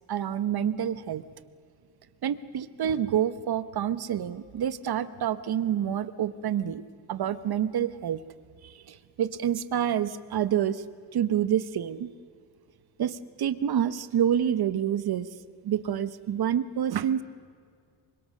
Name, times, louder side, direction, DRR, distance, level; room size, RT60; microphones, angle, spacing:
voice 1, 0.1-1.2 2.2-6.8 7.1-8.2 8.6-10.8 11.1-12.1 13.0-15.3 15.6-17.2, right 9 dB, 50° right, 14 dB, 0.9 m, -28 dB
27.0 x 25.0 x 6.5 m, 2.2 s
cardioid pair, 130°, 48 cm